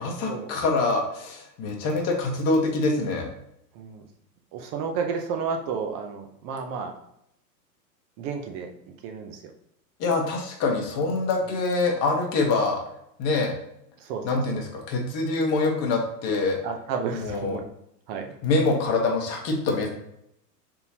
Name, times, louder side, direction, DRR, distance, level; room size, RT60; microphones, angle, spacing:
voice 1, 0.0-3.3 10.0-12.8 13.2-13.5 14.2-16.6 17.1-17.6 18.4-19.9, left 3 dB, 30° left, 1 dB, 1.1 m, -25 dB
voice 2, 3.7-4.1 4.5-6.9 8.2-8.7 9.0-9.4 14.0-14.2 16.6-17.7 18.1-18.4, right 6 dB, 30° right, 4 dB, 0.5 m, -31 dB
4.1 x 3.7 x 2.8 m, 0.76 s
hypercardioid pair, 110°, 50 cm